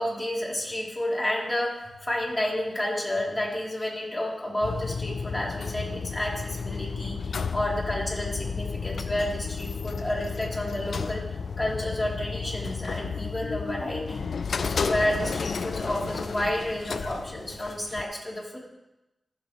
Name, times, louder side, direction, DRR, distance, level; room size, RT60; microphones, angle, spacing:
voice 1, 0.0-11.3 11.6-14.2 14.6-18.6, left 1 dB, 20° left, -5 dB, 3.3 m, -30 dB
sound 1, 4.6-18.0, left 5 dB, 80° left, 0.4 m, -32 dB
15.0 x 7.1 x 3.1 m, 0.96 s
wide cardioid pair, 70°, 0 cm